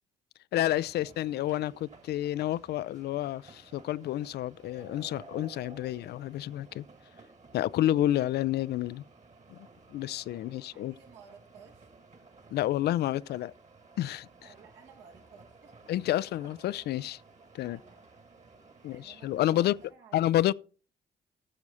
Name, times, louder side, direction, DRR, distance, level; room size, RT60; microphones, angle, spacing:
voice 1, 0.5-6.9 7.5-9.0 9.5-9.6 9.9-10.9 12.5-13.5 14.0-14.3 15.9-17.2 17.5-17.8 18.8-19.8 20.1-20.5, left 13 dB, 55° left, 0.4 m, -29 dB
sound 1, 0.5-19.9, right 3 dB, 35° right, 2.0 m, -55 dB
voice 2, 10.3-11.9 14.4-15.9 17.6-18.2 18.8-20.2, right 6 dB, 70° right, 2.0 m, -56 dB
13.5 x 7.1 x 4.2 m
hypercardioid pair, 40°, 20 cm